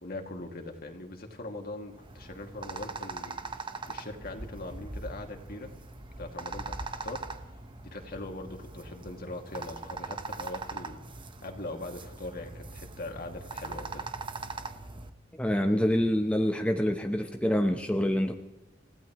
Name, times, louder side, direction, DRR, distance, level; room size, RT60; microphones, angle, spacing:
voice 1, 0.0-5.7 6.2-7.2 7.8-11.0 11.4-14.1, left 2 dB, 50° left, 3 dB, 2.3 m, -41 dB
sound 1, 1.9-15.1, right 3 dB, 25° right, 1.0 m, -41 dB
voice 2, 15.4-18.3, equal, 5° left, 4 dB, 0.9 m, -26 dB
29.0 x 16.0 x 3.1 m, 1.0 s
head